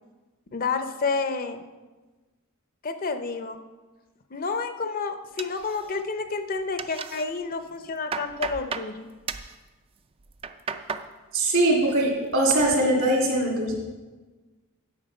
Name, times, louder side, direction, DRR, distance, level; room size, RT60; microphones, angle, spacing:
voice 1, 0.5-1.6 2.8-3.6 4.3-9.1, left 4 dB, 40° left, 8 dB, 0.6 m, -30 dB
sound 1, 5.4-6.2 6.5-7.3 7.7-8.9 9.3-9.6 10.2-11.1 11.4-12.0 12.3-12.8, right 5 dB, 25° right, 0.3 m, -35 dB
voice 2, 11.3-13.7, right 1 dB, 65° right, -1 dB, 2.7 m, -22 dB
10.0 x 7.3 x 5.4 m, 1.2 s
head